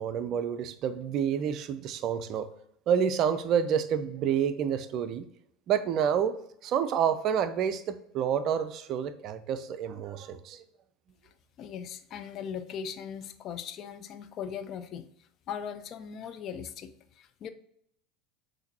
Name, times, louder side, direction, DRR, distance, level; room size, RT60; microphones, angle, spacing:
voice 1, 0.0-2.5 2.9-5.2 5.7-6.4 6.6-10.6, right 8 dB, 45° right, 11 dB, 0.4 m, -28 dB
voice 2, 11.2-15.1 15.5-17.5, left 8 dB, 45° left, 10 dB, 0.4 m, -39 dB
5.7 x 2.6 x 2.7 m, 0.73 s
figure-of-eight pair, 75°, 0 cm